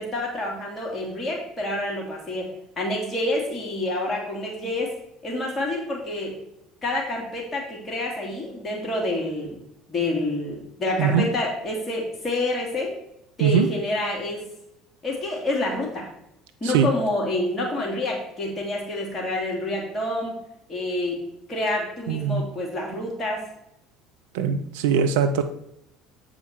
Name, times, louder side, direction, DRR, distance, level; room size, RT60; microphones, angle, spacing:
voice 1, 0.0-2.5 2.8-4.9 5.2-6.3 6.8-9.6 9.9-12.9 13.4-14.5 15.0-16.1 16.6-20.4 20.7-21.2 21.5-23.4, left 1 dB, 30° left, -2 dB, 3.2 m, -28 dB
voice 2, 22.1-22.5 24.3-25.4, right 7 dB, 65° right, 9 dB, 0.5 m, -21 dB
8.1 x 5.0 x 4.6 m, 0.79 s
figure-of-eight pair, 60°, 0 cm